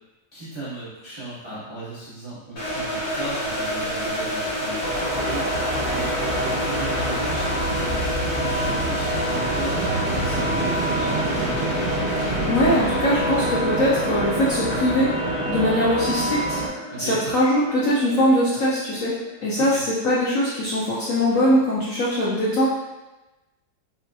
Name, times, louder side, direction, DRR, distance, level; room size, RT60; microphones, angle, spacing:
voice 1, 0.3-11.6 16.9-17.2 19.6-19.8, right 2 dB, 40° right, -10 dB, 0.4 m, -36 dB
sound 1, 2.6-19.4, equal, 85° left, 1.8 m, -29 dB
sound 2, 4.8-16.7, right 1 dB, 60° right, 1.3 m, -26 dB
voice 2, 12.5-15.1 15.5-16.6 17.0-19.1 19.4-22.7, equal, 70° left, -8 dB, 0.8 m, -21 dB
4.0 x 2.6 x 2.2 m, 1.1 s
omnidirectional pair, 1.9 m